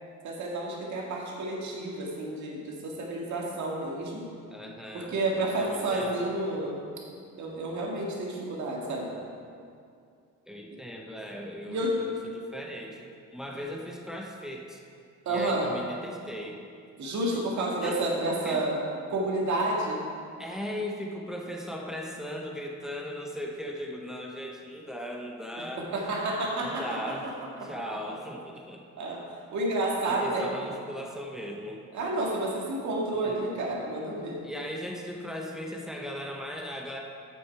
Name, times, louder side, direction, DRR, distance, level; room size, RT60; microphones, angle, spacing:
voice 1, 0.2-4.3 4.9-6.8 7.4-9.1 11.7-11.9 15.3-15.7 17.0-18.8 19.1-20.0 25.8-27.0 27.2-27.3 29.0-29.2 29.5-30.4 31.9-34.4, right 2 dB, 70° right, -2 dB, 2.1 m, -30 dB
voice 2, 4.5-5.1 5.5-6.3 10.5-14.8 15.3-16.6 17.3-18.1 18.4-18.6 20.4-25.9 26.6-27.3 27.6-28.8 30.1-31.8 33.2-33.4 34.4-37.0, equal, ahead, 0 dB, 1.0 m, -38 dB
8.3 x 7.6 x 4.7 m, 2.3 s
cardioid pair, 90°, 30 cm